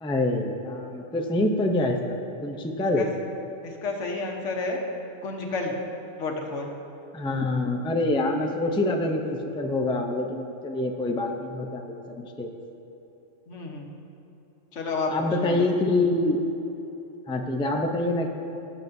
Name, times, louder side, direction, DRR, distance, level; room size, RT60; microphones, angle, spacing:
voice 1, 0.0-3.1 7.1-12.5 15.1-16.4 17.3-18.3, left 2 dB, 5° left, 2 dB, 0.4 m, -26 dB
voice 2, 3.6-4.8 5.2-5.7 6.2-6.7 13.5-13.9 14.7-15.6, left 3 dB, 85° left, 1 dB, 1.4 m, -30 dB
17.5 x 7.3 x 2.7 m, 3.0 s
omnidirectional pair, 1.2 m